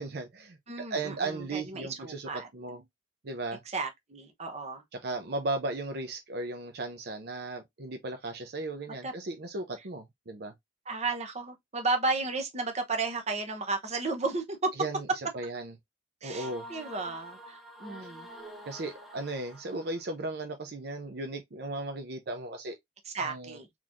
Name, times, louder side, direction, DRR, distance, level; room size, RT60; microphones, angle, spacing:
voice 1, 0.0-2.8 3.2-3.6 4.9-10.5 14.8-15.1 15.3-15.7 16.2-16.7 18.7-22.7 23.2-23.6, right 2 dB, 60° right, 0.6 m, -36 dB
voice 2, 0.7-2.5 3.7-4.8 9.0-9.1 10.9-14.7 16.2-18.3 23.1-23.7, right 3 dB, 35° right, 0.9 m, -33 dB
sound 1, 16.3-20.1, equal, ahead, 0.8 m, -47 dB
3.9 x 3.1 x 2.5 m
head